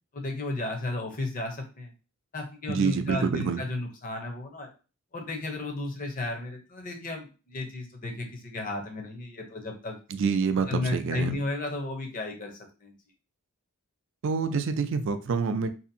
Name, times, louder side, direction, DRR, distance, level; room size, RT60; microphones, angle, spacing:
voice 1, 0.1-1.9 2.3-4.7 5.1-10.0 10.7-13.0, left 2 dB, 40° left, 2 dB, 0.6 m, -33 dB
voice 2, 2.7-3.6 10.1-11.4 14.2-15.7, right 5 dB, 60° right, 9 dB, 0.4 m, -27 dB
2.7 x 2.4 x 2.6 m, 0.33 s
head